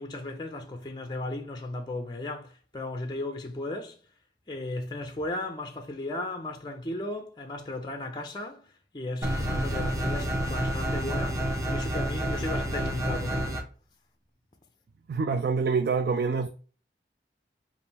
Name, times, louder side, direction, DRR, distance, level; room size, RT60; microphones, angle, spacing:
voice 1, 0.0-4.0 4.5-13.7, left 2 dB, 25° left, 0.4 m, -35 dB
sound 1, 9.2-13.6, right 1 dB, 20° right, 0.7 m, -29 dB
voice 2, 15.1-16.5, right 5 dB, 60° right, 0.3 m, -26 dB
3.5 x 2.6 x 4.0 m
head